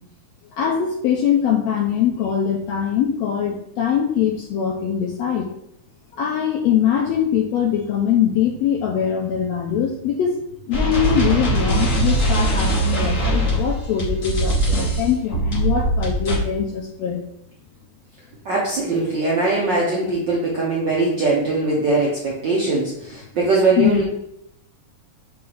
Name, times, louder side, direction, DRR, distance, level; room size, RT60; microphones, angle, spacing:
voice 1, 0.5-5.5 6.1-10.4 10.7-17.2 23.8-24.0, left 8 dB, 75° left, 0 dB, 1.7 m, -22 dB
sound 1, 10.7-16.4, right 1 dB, 55° left, 0.8 m, -21 dB
voice 2, 18.4-24.0, right 3 dB, 70° right, -4 dB, 1.0 m, -21 dB
5.4 x 3.3 x 5.7 m, 0.75 s
omnidirectional pair, 3.4 m